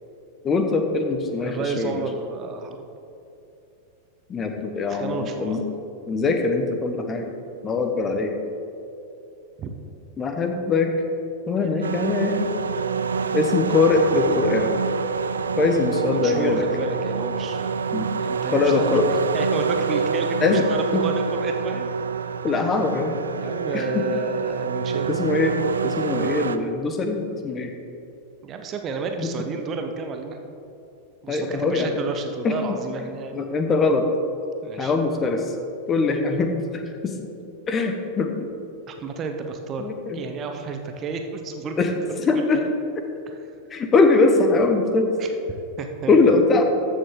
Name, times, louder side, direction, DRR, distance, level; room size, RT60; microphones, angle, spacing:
voice 1, 0.4-2.0 4.3-5.6 6.1-7.3 7.6-8.4 10.2-10.9 11.5-12.5 13.3-14.7 15.6-16.6 17.9-18.1 18.5-19.1 20.4-20.6 20.9-21.0 22.4-23.2 23.7-24.0 25.1-25.5 25.8-27.7 29.2-29.3 31.3-31.9 32.4-32.8 33.3-34.1 34.8-35.5 35.9-37.1 37.7-38.5 39.8-40.3 41.8-41.9 42.3-42.6 43.7-45.1 46.1-46.6, left 3 dB, 25° left, 5 dB, 1.0 m, -22 dB
voice 2, 1.4-2.8 4.9-5.6 9.6-9.7 11.5-12.7 16.1-21.9 23.4-25.2 28.4-30.4 31.2-33.5 34.6-34.9 38.9-39.9 40.1-42.7 43.3-43.4 45.2-45.3 45.8-46.4, right 4 dB, 30° right, 5 dB, 0.9 m, -32 dB
sound 1, 11.8-26.6, right 5 dB, 70° right, 0.4 m, -26 dB
14.0 x 6.7 x 3.8 m, 2.8 s
figure-of-eight pair, 90°, 0 cm